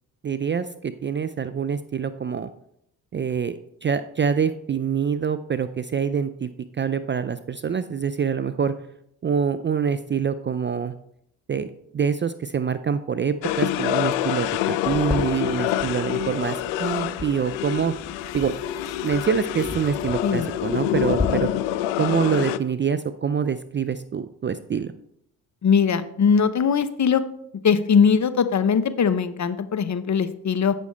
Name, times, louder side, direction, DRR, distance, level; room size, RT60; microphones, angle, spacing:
voice 1, 0.2-2.5 3.1-6.5 6.8-8.7 9.2-10.9 11.5-17.9 18.3-18.5 19.0-21.5 22.0-24.9, right 7 dB, 25° right, 12 dB, 0.4 m, -25 dB
sound 1, 13.4-22.6, left 12 dB, 75° left, 0.5 m, -26 dB
sound 2, 14.8-21.3, left 2 dB, 5° left, 1.6 m, -36 dB
voice 2, 25.6-27.2 27.6-30.7, left 6 dB, 40° left, 12 dB, 0.8 m, -20 dB
8.2 x 6.2 x 4.3 m, 0.73 s
hypercardioid pair, 45°, 45 cm